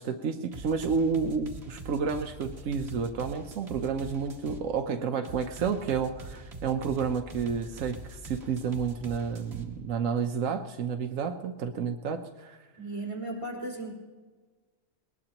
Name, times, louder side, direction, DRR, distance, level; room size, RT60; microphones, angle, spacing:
voice 1, 0.0-12.6, right 6 dB, 85° right, 6 dB, 1.2 m, -30 dB
sound 1, 0.5-4.6 5.2-9.7, right 2 dB, 55° right, 1.7 m, -43 dB
voice 2, 12.8-13.9, right 2 dB, 25° right, -4 dB, 4.2 m, -35 dB
21.5 x 19.5 x 2.9 m, 1.4 s
omnidirectional pair, 1.3 m